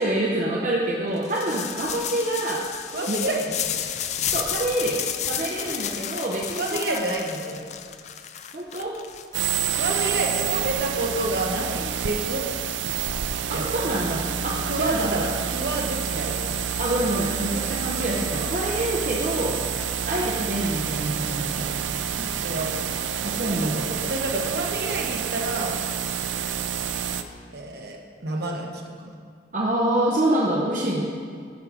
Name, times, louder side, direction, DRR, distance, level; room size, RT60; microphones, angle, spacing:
voice 1, 0.0-2.7 3.1-3.2 4.3-7.0 8.5-9.0 13.5-15.3 16.8-19.6 20.1-21.8 23.2-23.9 29.5-31.0, right 1 dB, 40° right, -3 dB, 0.7 m, -26 dB
sound 1, 1.2-11.1, left 9 dB, 35° left, 0.3 m, -32 dB
voice 2, 2.9-4.0 4.5-4.7 6.6-7.7 9.8-12.4 13.5-14.0 14.4-16.6 22.1-22.8 23.4-25.8 27.5-29.1, right 1 dB, 55° right, 0 dB, 1.0 m, -29 dB
sound 2, 9.3-27.2, right 8 dB, 75° right, 0.4 m, -28 dB
8.4 x 4.8 x 6.1 m, 2.2 s
head